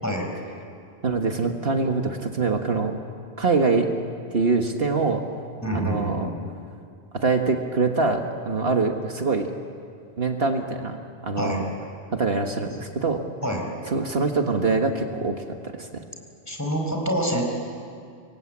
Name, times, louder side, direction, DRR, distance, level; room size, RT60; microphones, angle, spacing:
voice 1, 1.0-3.0 3.4-3.9 4.3-5.2 5.7-6.3 7.1-9.5 10.2-11.7 12.1-13.2 13.9-15.4 15.7-16.0, right 3 dB, 60° right, 4 dB, 1.7 m, -24 dB
voice 2, 5.6-6.3 11.4-11.6 13.4-13.6 16.5-17.4, equal, 15° left, 1 dB, 4.6 m, -26 dB
27.0 x 23.0 x 8.6 m, 2.3 s
omnidirectional pair, 1.1 m